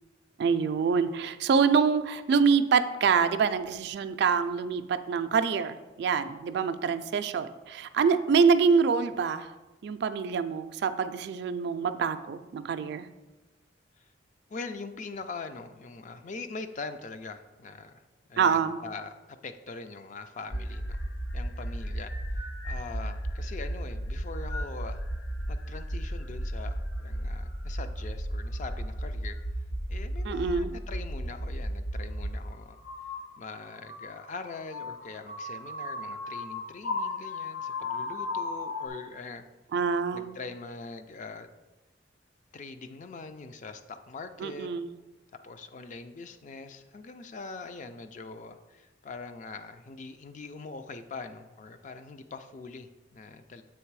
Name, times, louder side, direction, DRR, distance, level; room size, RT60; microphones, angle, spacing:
voice 1, 0.4-9.5 9.8-13.1 18.4-18.8 30.2-30.7 39.7-40.4 44.4-44.9, right 5 dB, 60° right, 9 dB, 0.3 m, -26 dB
voice 2, 14.5-18.0 18.3-19.1 19.4-21.0 21.3-22.1 22.6-25.0 25.5-29.4 29.9-32.8 33.4-39.5 40.1-41.5 42.5-44.7 45.4-53.6, left 4 dB, 40° left, 9 dB, 0.4 m, -42 dB
sound 1, 20.5-32.3 32.8-38.9, equal, 75° left, 0.8 m, -34 dB
7.2 x 3.3 x 4.6 m, 1.1 s
head